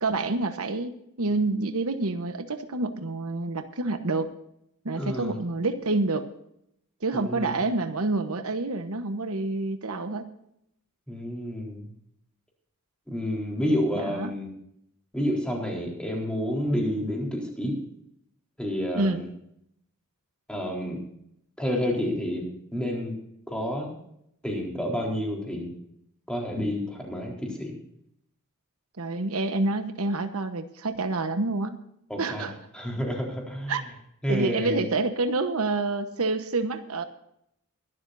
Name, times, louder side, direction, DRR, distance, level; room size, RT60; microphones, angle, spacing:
voice 1, 0.0-4.3 4.8-6.3 7.0-10.2 14.1-14.3 19.0-19.2 29.0-31.8 32.2-32.5 33.7-33.8 34.3-37.0, right 3 dB, 70° right, 9 dB, 1.1 m, -28 dB
voice 2, 5.0-5.4 7.1-7.6 11.1-11.9 13.1-14.5 15.1-17.8 18.6-19.3 20.5-21.0 21.6-22.4 22.7-23.1 23.5-23.9 24.4-25.7 26.3-27.8 32.1-32.5 32.7-33.7 34.2-34.9, equal, 5° left, -1 dB, 4.0 m, -29 dB
22.5 x 12.5 x 2.6 m, 0.75 s
head